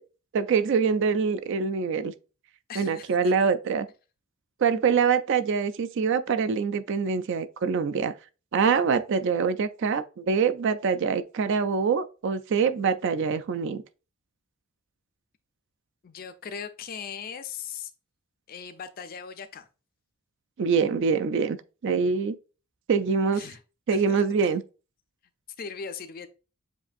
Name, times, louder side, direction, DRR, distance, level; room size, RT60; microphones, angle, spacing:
voice 1, 0.3-2.1 2.8-3.9 4.6-8.1 8.5-13.8 20.6-21.6 21.8-22.4 22.9-23.4 23.9-24.6, right 5 dB, 55° right, 0.4 m, -24 dB
voice 2, 2.7-3.3 16.0-17.9 18.5-19.7 23.3-23.6 23.9-24.2 25.6-26.3, left 6 dB, 40° left, 0.4 m, -39 dB
7.3 x 2.6 x 2.5 m
head